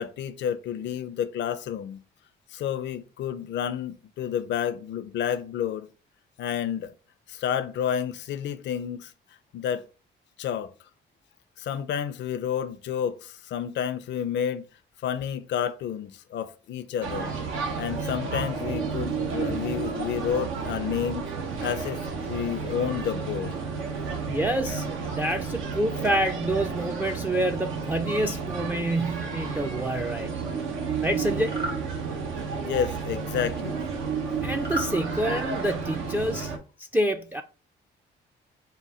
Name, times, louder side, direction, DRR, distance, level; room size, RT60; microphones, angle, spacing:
voice 1, 0.0-2.0 2.5-5.9 6.4-6.9 7.3-9.1 9.5-9.8 10.4-10.7 11.6-14.7 15.0-17.3 17.8-21.3 21.6-22.0 22.3-23.5 32.6-33.8, left 9 dB, 65° left, 0.5 m, -30 dB
sound 1, 17.0-36.6, right 5 dB, 90° right, 0.8 m, -31 dB
voice 2, 24.3-30.3 31.0-31.5 34.4-36.5 36.8-37.4, right 1 dB, 10° right, 0.3 m, -27 dB
sound 2, 31.4-31.8 34.6-34.9, right 1 dB, 55° right, 1.6 m, -32 dB
3.8 x 2.2 x 4.2 m
cardioid pair, 90°, 20 cm